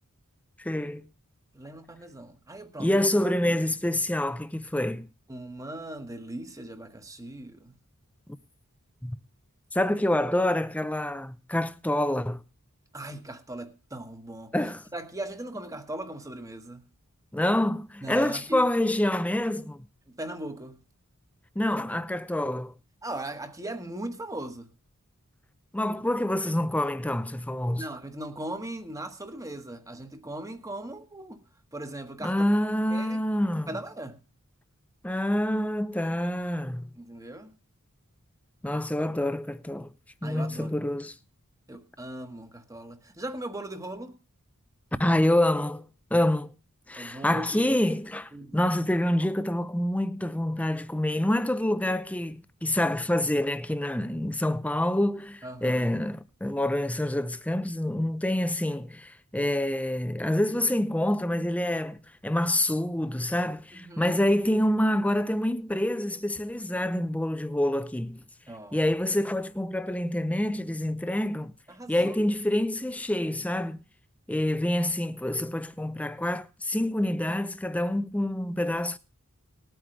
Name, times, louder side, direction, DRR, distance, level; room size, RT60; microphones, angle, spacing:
voice 1, 0.6-1.1 2.8-5.1 9.0-9.2 9.7-12.4 14.5-14.8 17.3-19.9 21.6-22.8 25.7-27.9 32.2-33.7 35.0-36.9 38.6-39.9 40.2-41.1 45.0-46.5 46.9-68.2 68.7-71.5 71.9-73.8 74.3-79.0, left 1 dB, 5° left, 0.6 m, -27 dB
voice 2, 1.5-3.6 5.3-7.8 9.8-10.0 12.9-14.5 14.9-16.9 18.0-18.7 20.1-20.8 23.0-24.7 27.8-31.4 31.7-32.4 32.9-33.2 33.7-34.2 37.0-37.5 40.2-40.8 41.7-44.2 47.0-47.8 48.3-48.7 55.4-55.8 63.8-64.2 68.5-68.8 71.7-72.3, right 1 dB, 15° right, 1.3 m, -39 dB
20.0 x 8.9 x 3.2 m
head